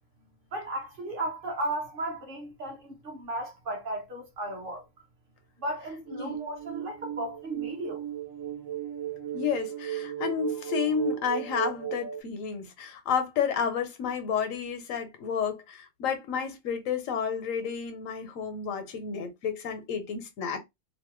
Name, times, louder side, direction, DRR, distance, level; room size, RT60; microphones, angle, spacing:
voice 1, 0.5-4.8 5.6-8.0, right 1 dB, 50° right, 0.9 m, -35 dB
sound 1, 6.1-12.2, right 11 dB, 90° right, 1.0 m, -35 dB
voice 2, 9.3-20.6, left 7 dB, 90° left, 1.1 m, -31 dB
2.8 x 2.1 x 3.0 m
omnidirectional pair, 1.3 m